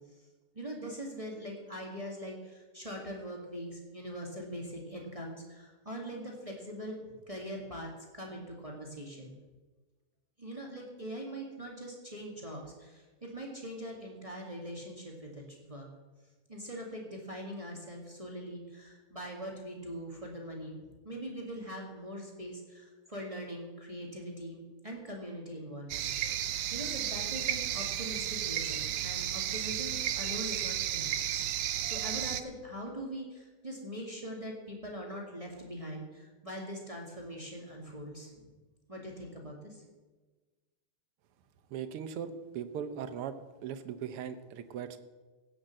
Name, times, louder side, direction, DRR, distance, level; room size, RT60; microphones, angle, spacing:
voice 1, 0.5-7.0 7.3-9.4 10.4-15.9 16.5-20.8 21.0-24.6 24.8-31.1 31.5-38.5 38.9-39.8, equal, 15° right, 0 dB, 1.9 m, -42 dB
sound 1, 25.9-32.4, right 11 dB, 70° right, 1.3 m, -33 dB
voice 2, 41.7-43.4 43.6-45.0, right 8 dB, 90° right, 10 dB, 1.8 m, -39 dB
16.0 x 6.6 x 7.6 m, 1.3 s
omnidirectional pair, 2.4 m